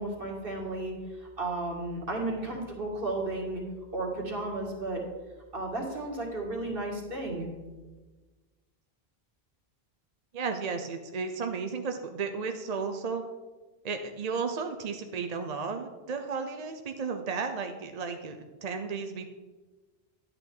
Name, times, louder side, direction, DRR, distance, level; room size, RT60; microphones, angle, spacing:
voice 1, 0.0-3.6 3.9-5.0 5.5-7.5, right 2 dB, 60° right, -1 dB, 2.2 m, -33 dB
voice 2, 10.3-13.3 13.8-19.2, right 5 dB, 45° right, 5 dB, 0.6 m, -34 dB
11.0 x 9.0 x 3.8 m, 1.3 s
omnidirectional pair, 1.1 m